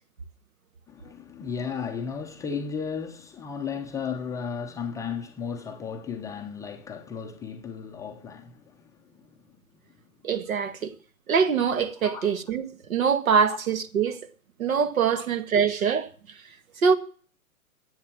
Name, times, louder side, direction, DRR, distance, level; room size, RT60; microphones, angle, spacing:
voice 1, 0.9-9.4 12.0-12.3 13.4-13.6 15.1-15.3, left 6 dB, 5° left, 0.6 m, -35 dB
voice 2, 10.2-10.9 11.3-14.2 14.6-16.1 16.8-16.9, right 6 dB, 65° right, 1.6 m, -24 dB
11.0 x 8.0 x 7.5 m
figure-of-eight pair, 120°, 44 cm